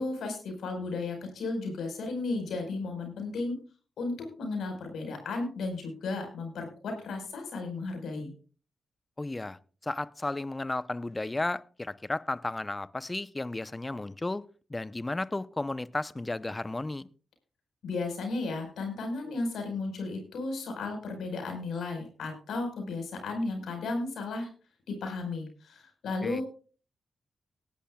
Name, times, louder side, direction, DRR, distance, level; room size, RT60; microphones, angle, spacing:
voice 1, 0.0-3.6 4.0-8.3 17.8-24.5 24.9-26.4, left 3 dB, 75° left, 4.8 m, -34 dB
voice 2, 9.2-14.4 14.7-17.1 26.2-26.4, left 2 dB, 25° left, 0.7 m, -34 dB
18.5 x 11.5 x 2.4 m
supercardioid pair, 40°, 0 cm